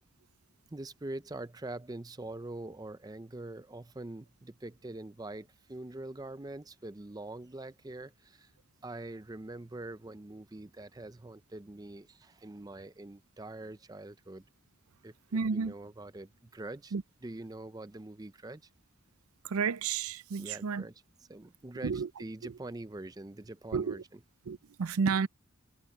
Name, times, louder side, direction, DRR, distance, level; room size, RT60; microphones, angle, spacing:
voice 1, 0.7-8.5 8.8-14.4 15.0-15.1 15.5-16.9 17.2-18.6 20.4-20.9 21.3-24.0, right 2 dB, 15° right, 0.5 m, -44 dB
voice 2, 15.3-15.7 16.9-17.0 19.4-20.9 21.8-22.1 22.4-22.6 23.7-24.0 24.5-25.3, right 5 dB, 85° right, 0.5 m, -31 dB
head